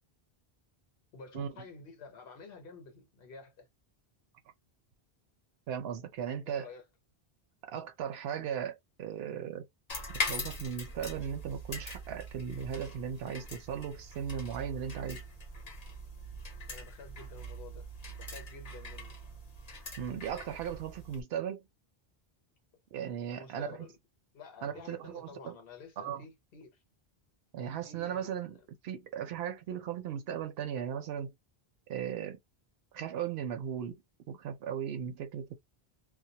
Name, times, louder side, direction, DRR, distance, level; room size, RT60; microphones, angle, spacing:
voice 1, 1.1-3.7 6.5-6.9 16.7-17.9 18.2-19.2 23.3-24.0 24.3-26.8 27.8-28.5, left 4 dB, 70° left, 1.0 m, -50 dB
voice 2, 5.7-6.7 7.7-9.7 10.1-15.2 20.0-21.6 22.9-23.9 24.6-25.6 26.0-26.2 27.5-28.6 28.8-31.3 31.9-32.4 32.9-34.0 34.3-35.5, right 8 dB, 80° right, 0.8 m, -37 dB
sound 1, 9.9-21.2, left 1 dB, 40° left, 0.8 m, -42 dB
2.3 x 2.0 x 2.8 m
omnidirectional pair, 1.0 m